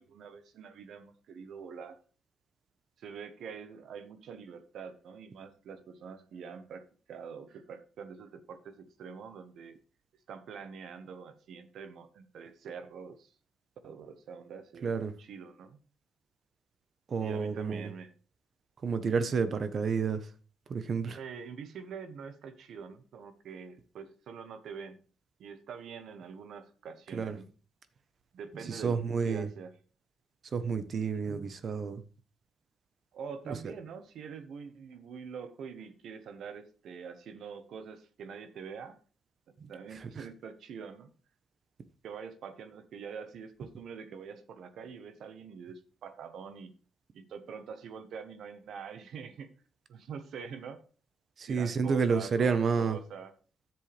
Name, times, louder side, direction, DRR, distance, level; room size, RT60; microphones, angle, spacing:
voice 1, 0.0-2.0 3.0-9.8 10.3-13.3 13.8-14.9 15.2-15.8 17.2-18.1 21.2-25.0 25.4-27.5 28.3-29.0 29.2-29.7 33.1-39.0 39.7-41.1 42.0-46.7 47.1-49.5 49.9-50.8 51.5-53.3, right 6 dB, 70° right, 1.2 m, -45 dB
voice 2, 14.8-15.1 17.1-17.9 18.8-20.3 20.7-21.2 27.1-27.4 28.6-29.5 30.5-32.0 33.5-33.7 39.6-40.2 51.4-53.0, right 5 dB, 50° right, 1.0 m, -30 dB
10.5 x 7.6 x 3.4 m
cardioid pair, 90°, 0 cm